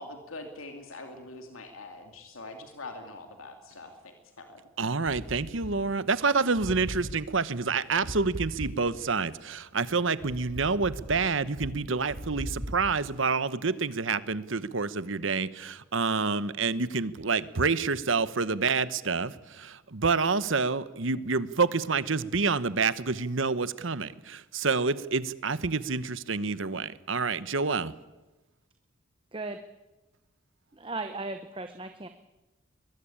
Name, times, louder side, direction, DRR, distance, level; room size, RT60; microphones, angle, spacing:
voice 1, 0.0-4.6, left 2 dB, 80° left, 5 dB, 2.6 m, -44 dB
voice 2, 4.8-27.9, right 4 dB, 70° right, 15 dB, 1.0 m, -28 dB
sound 1, 5.1-6.3 6.5-9.2 9.7-13.0, equal, 50° right, 1.9 m, -40 dB
voice 3, 30.7-32.1, right 3 dB, 25° right, 7 dB, 0.9 m, -36 dB
22.5 x 21.0 x 8.7 m, 1.1 s
head